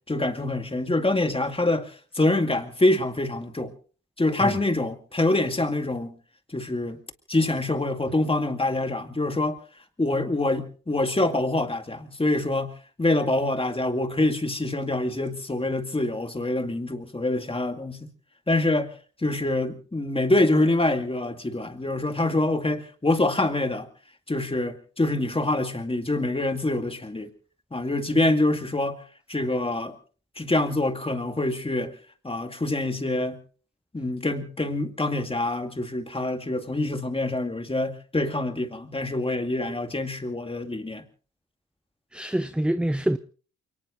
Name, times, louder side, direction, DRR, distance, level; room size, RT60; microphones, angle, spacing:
voice 1, 0.1-3.7 4.2-6.1 6.5-7.0 7.3-9.6 10.0-18.1 18.5-18.9 19.2-23.9 24.3-27.3 27.7-29.0 29.3-29.9 30.4-31.9 32.2-33.4 33.9-41.0, left 2 dB, 15° left, 2.2 m, -25 dB
voice 2, 42.1-43.2, right 1 dB, 5° right, 0.7 m, -25 dB
29.0 x 19.0 x 2.6 m
hypercardioid pair, 45°, 39 cm